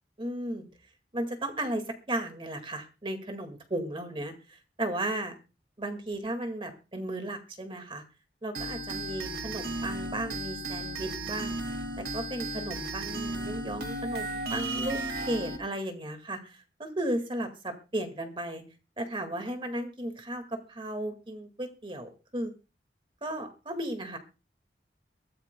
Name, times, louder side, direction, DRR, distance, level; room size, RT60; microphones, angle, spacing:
voice 1, 0.2-0.7 1.1-5.3 5.8-8.0 8.4-11.5 12.0-18.6 19.0-22.5 23.2-24.2, right 1 dB, 30° right, 7 dB, 2.0 m, -35 dB
sound 1, 8.5-15.6, right 1 dB, 60° right, 2.2 m, -34 dB
22.5 x 14.5 x 2.2 m, 0.31 s
head